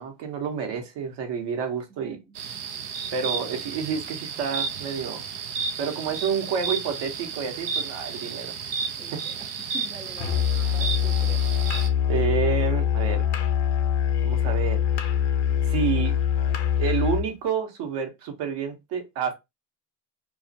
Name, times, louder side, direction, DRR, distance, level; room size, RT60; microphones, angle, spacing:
voice 1, 0.0-2.2 3.1-5.2 5.8-8.5 12.1-13.2 14.2-14.8 15.7-16.2 16.8-19.3, right 6 dB, 60° right, 0.9 m, -29 dB
voice 2, 1.9-2.4 9.0-9.5 9.7-11.4 11.9-12.0, right 1 dB, 10° right, 0.3 m, -45 dB
sound 1, 2.3-11.9, right 6 dB, 80° right, 0.6 m, -32 dB
Musical instrument, 10.2-17.3, left 9 dB, 55° left, 0.6 m, -24 dB
2.3 x 2.1 x 2.6 m
hypercardioid pair, 65°, 48 cm